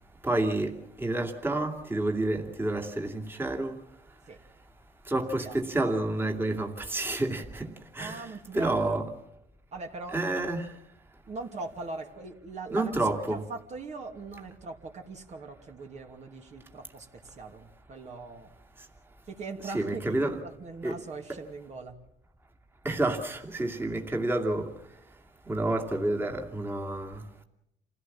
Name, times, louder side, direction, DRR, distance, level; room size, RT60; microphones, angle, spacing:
voice 1, 0.2-3.8 5.1-9.1 10.1-10.7 12.7-13.4 19.6-20.4 20.8-21.0 22.8-24.7 25.5-27.2, right 2 dB, 15° right, 2.6 m, -29 dB
voice 2, 8.0-9.0 9.7-10.3 11.3-12.9 13.3-18.5 19.3-22.0, right 3 dB, 40° right, 2.6 m, -40 dB
28.0 x 16.5 x 7.5 m
cardioid pair, 110°, 17 cm